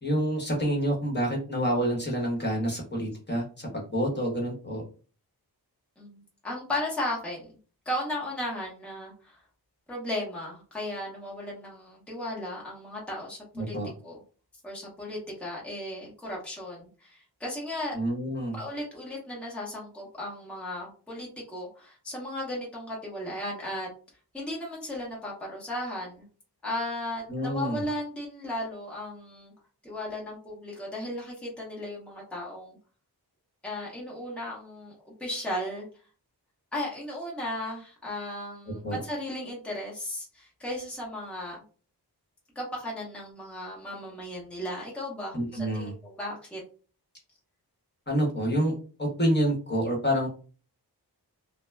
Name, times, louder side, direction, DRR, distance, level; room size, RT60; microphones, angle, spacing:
voice 1, 0.0-4.8 13.6-13.9 17.9-18.6 27.3-27.8 38.8-39.0 45.3-45.9 48.1-48.7 49.0-50.3, equal, 25° left, -2 dB, 1.0 m, -28 dB
voice 2, 6.0-7.5 7.9-9.4 9.9-13.8 14.0-14.2 14.6-17.9 18.5-23.9 24.3-26.2 26.6-29.5 29.8-32.8 33.6-35.9 36.7-41.6 42.5-46.6, left 1 dB, 5° left, -4 dB, 0.8 m, -35 dB
2.3 x 2.1 x 3.2 m, 0.38 s
wide cardioid pair, 110°, 40 cm